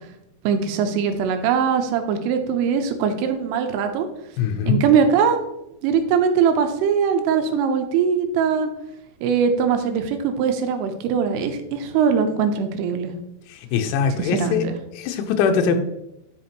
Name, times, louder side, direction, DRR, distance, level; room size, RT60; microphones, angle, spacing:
voice 1, 0.4-4.1 4.7-5.4 5.8-8.7 9.2-13.1 14.2-14.8, right 6 dB, 90° right, 6 dB, 3.4 m, -21 dB
voice 2, 4.4-4.8 13.5-14.6 15.0-15.8, left 6 dB, 80° left, 5 dB, 3.0 m, -21 dB
12.5 x 5.2 x 3.0 m, 0.86 s
omnidirectional pair, 5.7 m